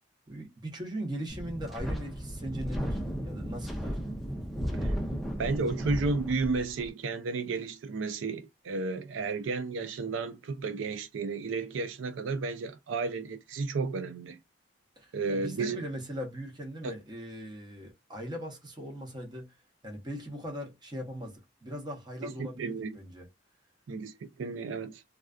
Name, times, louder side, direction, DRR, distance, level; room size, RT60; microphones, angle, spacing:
voice 1, 0.3-4.0 15.0-19.6 19.8-23.3, equal, 25° right, 0.8 m, -39 dB
Wind, 1.3-6.9, equal, ahead, 0.4 m, -34 dB
voice 2, 5.4-14.4 15.1-15.8 16.8-16.9 22.2-23.0 23.9-25.0, right 4 dB, 90° right, 0.4 m, -33 dB
2.3 x 2.2 x 2.3 m
head